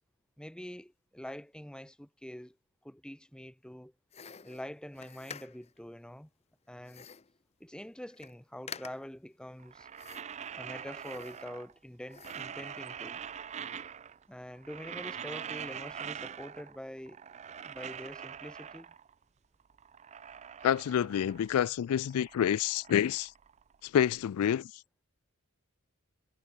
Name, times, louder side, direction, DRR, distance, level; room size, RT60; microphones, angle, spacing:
voice 1, 0.4-2.6 2.8-3.9 4.4-6.3 6.7-7.1 7.6-9.9 10.6-13.2 14.3-17.2 17.6-18.9, equal, 5° left, 0.9 m, -45 dB
sound 1, 4.1-5.8 6.8-7.4 7.8-7.9 8.1-8.4 8.7-9.2 9.9-10.5 10.9-11.7 12.1-12.6, left 7 dB, 30° left, 0.6 m, -49 dB
sound 2, 9.6-11.8 12.1-14.3 14.5-16.8 17.1-19.1 19.6-21.6 21.9-24.1, right 8 dB, 30° right, 0.4 m, -44 dB
voice 2, 20.6-23.3 23.8-24.7, left 9 dB, 90° left, 0.3 m, -28 dB
head